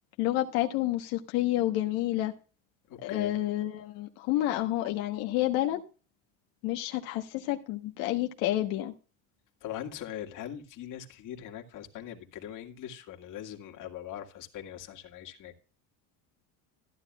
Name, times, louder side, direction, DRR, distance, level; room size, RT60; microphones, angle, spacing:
voice 1, 0.2-2.3 3.0-5.8 6.6-8.9, left 15 dB, 85° left, 1.2 m, -29 dB
voice 2, 2.9-3.3 9.6-15.5, left 10 dB, 60° left, 2.1 m, -41 dB
14.5 x 9.7 x 2.4 m
cardioid pair, 120°, 35 cm